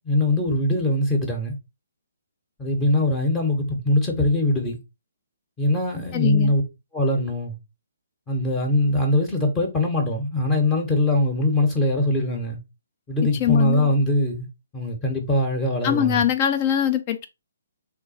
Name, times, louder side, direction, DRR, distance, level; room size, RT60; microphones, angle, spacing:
voice 1, 0.0-1.6 2.6-4.8 5.6-6.6 6.9-7.5 8.3-12.6 13.1-14.5 14.7-16.2, left 1 dB, 15° left, 0.8 m, -22 dB
voice 2, 6.1-6.5 13.3-13.9 15.8-17.3, left 10 dB, 30° left, 0.4 m, -22 dB
3.1 x 2.2 x 4.0 m
figure-of-eight pair, 135°, 0 cm